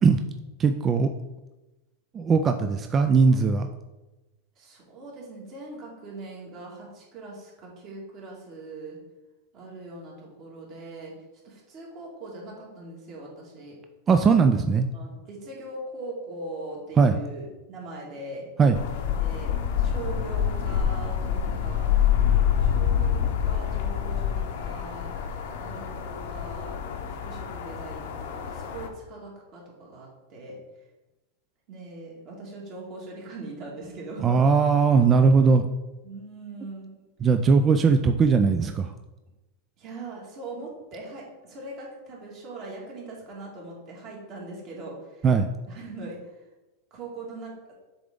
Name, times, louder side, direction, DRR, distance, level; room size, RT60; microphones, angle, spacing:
voice 1, 0.6-1.1 2.1-3.7 14.1-14.9 17.0-17.2 18.6-18.8 34.2-35.7 37.2-38.9 45.2-45.5, right 5 dB, 25° right, 7 dB, 0.3 m, -19 dB
voice 2, 3.2-3.7 4.6-9.0 9.5-11.1 11.4-13.7 14.9-18.4 19.1-22.1 22.6-25.1 25.6-26.8 27.1-30.6 31.7-34.4 36.0-36.9 39.8-45.2 45.7-46.4 46.9-47.7, right 2 dB, 45° right, -3 dB, 2.0 m, -41 dB
sound 1, 18.7-28.9, left 9 dB, 65° left, 0.8 m, -26 dB
6.8 x 3.8 x 3.7 m, 1.1 s
supercardioid pair, 130°, 0 cm